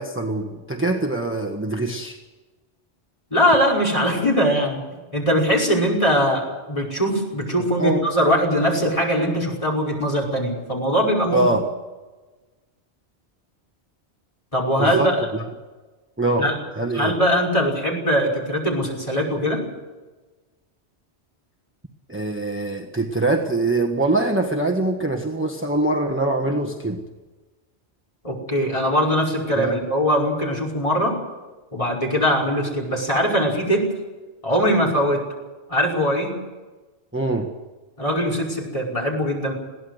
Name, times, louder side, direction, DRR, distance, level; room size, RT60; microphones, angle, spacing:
voice 1, 0.0-2.2 7.8-8.0 11.3-11.7 14.8-15.1 16.2-17.1 22.1-27.0 29.6-29.8 37.1-37.5, right 2 dB, 10° right, 3 dB, 1.4 m, -23 dB
voice 2, 3.3-4.8 5.1-11.5 14.5-15.3 16.4-16.6 16.9-19.6 28.2-31.1 31.7-33.9 34.4-35.2 35.7-36.4 38.0-39.5, equal, 30° left, -1 dB, 5.5 m, -21 dB
21.5 x 16.5 x 8.1 m, 1.2 s
omnidirectional pair, 1.2 m